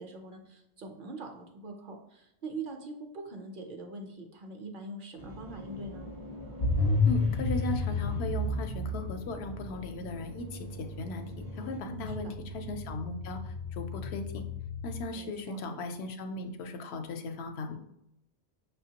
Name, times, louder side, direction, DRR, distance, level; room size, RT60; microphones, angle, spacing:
voice 1, 0.0-6.1 11.7-12.3 15.1-15.6, right 3 dB, 60° right, 3 dB, 0.7 m, -43 dB
sound 1, 5.2-11.8, left 1 dB, 25° right, 0.5 m, -45 dB
sound 2, 6.6-15.1, left 2 dB, 45° left, 0.5 m, -32 dB
voice 2, 7.1-11.3 11.6-12.3 12.5-13.4 13.8-14.4 14.8-17.8, left 3 dB, 80° left, 6 dB, 0.8 m, -37 dB
5.7 x 2.2 x 2.8 m, 0.81 s
omnidirectional pair, 1.1 m